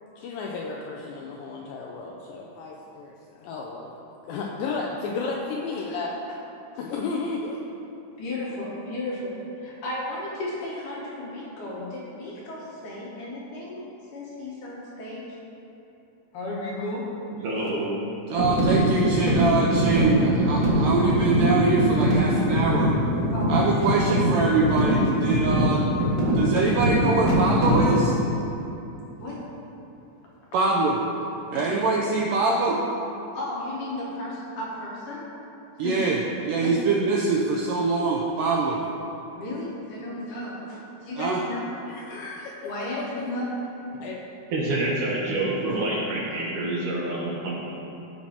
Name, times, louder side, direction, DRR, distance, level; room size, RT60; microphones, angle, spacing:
voice 1, 0.2-3.9 4.2-6.4 6.8-7.6 41.9-42.5 44.0-44.2, left 4 dB, 80° left, -1 dB, 2.1 m, -33 dB
voice 2, 8.2-13.9 14.1-15.2 16.3-17.0 23.3-23.5 26.6-26.7 29.2-29.4 30.5-30.7 31.5-31.7 33.3-35.2 35.8-36.0 36.6-36.7 39.3-41.7 42.6-43.5, left 1 dB, 65° left, -5 dB, 2.4 m, -34 dB
voice 3, 17.4-18.0 44.5-47.5, right 2 dB, 65° right, -5 dB, 2.3 m, -27 dB
voice 4, 18.3-22.9 23.5-25.9 26.3-28.1 30.5-31.0 31.5-32.8 35.8-38.8 41.2-41.4, right 3 dB, 90° right, -2 dB, 1.9 m, -24 dB
sound 1, 18.4-28.0, equal, 40° right, 1.1 m, -22 dB
15.5 x 6.0 x 2.9 m, 2.9 s
omnidirectional pair, 4.6 m